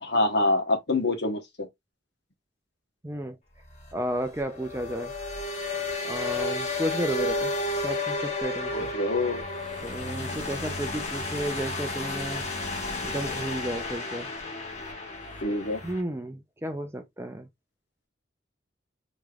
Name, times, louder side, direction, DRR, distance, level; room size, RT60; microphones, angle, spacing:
voice 1, 0.0-1.4 8.7-9.4 15.4-15.8, left 2 dB, 60° left, 1.3 m, -25 dB
voice 2, 3.0-3.4 3.9-5.1 6.0-7.5 7.8-8.9 9.8-12.5 13.0-14.3 15.8-17.5, right 1 dB, 15° right, 0.5 m, -33 dB
sound 1, 3.6-16.0, left 2 dB, 35° left, 1.5 m, -32 dB
5.1 x 3.1 x 2.3 m
head